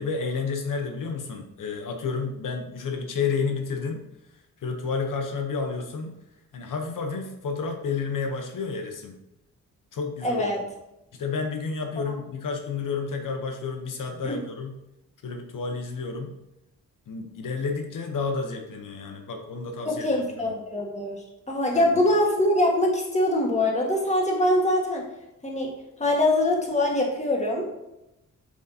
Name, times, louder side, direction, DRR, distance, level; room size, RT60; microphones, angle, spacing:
voice 1, 0.0-4.0 4.3-6.1 6.5-9.2 9.9-10.5 11.1-14.7 15.2-16.3 17.1-20.6 21.7-21.9, left 5 dB, 80° left, 4 dB, 0.9 m, -31 dB
voice 2, 10.2-10.6 14.2-14.4 19.8-21.2 21.5-25.0 25.4-25.7 26.0-27.7, left 1 dB, 20° left, 0 dB, 1.6 m, -23 dB
7.4 x 6.2 x 2.8 m, 0.91 s
wide cardioid pair, 120°, 32 cm